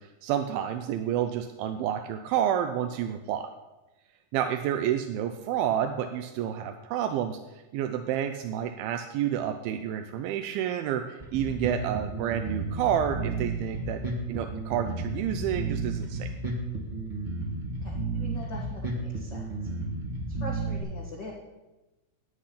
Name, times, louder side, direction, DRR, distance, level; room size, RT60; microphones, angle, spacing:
voice 1, 0.0-3.5 4.3-14.0 14.3-16.3, right 10 dB, 80° right, 6 dB, 2.2 m, -29 dB
Bass guitar, 11.2-20.8, right 3 dB, 30° right, 0.7 m, -32 dB
voice 2, 17.8-19.7 20.3-21.3, left 2 dB, 75° left, -3 dB, 1.0 m, -42 dB
12.5 x 8.4 x 5.7 m, 1.1 s
omnidirectional pair, 4.8 m